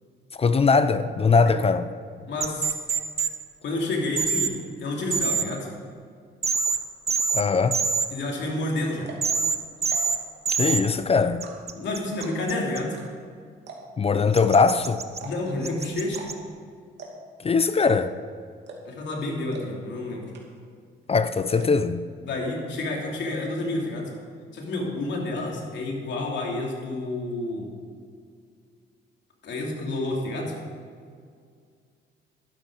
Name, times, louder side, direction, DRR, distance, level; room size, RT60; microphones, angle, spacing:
voice 1, 0.4-1.9 7.3-7.8 10.6-11.4 14.0-15.0 17.4-18.1 21.1-22.0, left 4 dB, 30° left, 0.5 m, -21 dB
voice 2, 2.3-2.8 3.6-5.7 8.1-9.1 11.7-13.0 15.2-16.3 18.8-20.3 22.2-24.1 24.5-27.7 29.4-30.6, left 2 dB, 65° left, 3.0 m, -29 dB
sound 1, 2.4-3.3 4.2-4.5 5.1-5.4 6.4-6.8 7.1-7.4 7.7-8.1 9.2-9.6 9.8-10.2 10.5-10.8 11.4-12.8 14.3-15.2 15.6-16.3, right 5 dB, 30° right, 0.9 m, -25 dB
sound 2, 9.1-9.3 9.8-10.2 10.5-11.0 11.4-11.8 12.2-12.5 12.9-13.0 13.3-13.4 13.7-14.0 14.4-14.5 15.1-15.6 16.1-16.3 16.5-16.6 17.0-17.3 17.8-18.2 18.7-19.0 19.5-19.6 20.0-20.1 20.3-20.8 21.0-21.6, right 5 dB, 65° right, 2.6 m, -42 dB
12.0 x 12.0 x 5.0 m
cardioid pair, 90°, 20 cm